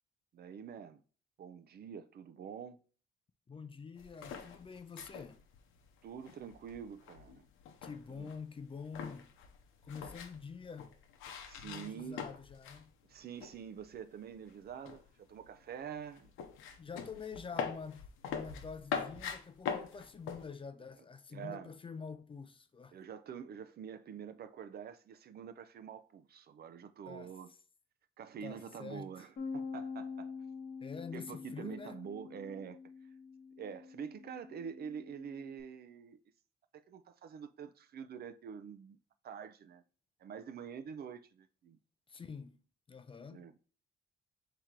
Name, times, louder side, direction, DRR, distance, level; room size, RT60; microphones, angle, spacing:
voice 1, 0.3-1.0 1.4-2.8 6.0-7.4 8.1-8.3 11.4-12.2 13.1-16.3 21.3-21.7 22.9-27.5 28.2-30.3 31.1-32.8 33.6-36.2 36.7-39.0 39.2-39.8 40.2-41.8 43.3-43.6, right 7 dB, 50° right, 0.5 m, -46 dB
voice 2, 3.5-5.4 7.8-9.3 9.8-10.9 11.6-12.9 16.8-23.0 27.1-27.3 28.4-29.3 30.8-32.0 42.1-42.6 42.9-43.5, left 5 dB, 25° left, 0.4 m, -47 dB
sound 1, 4.0-12.9 13.1-14.0 14.3-20.5, left 6 dB, 90° left, 0.7 m, -43 dB
Bass guitar, 29.4-35.6, left 5 dB, 60° left, 1.2 m, -46 dB
3.7 x 2.9 x 4.4 m
cardioid pair, 90°, 20 cm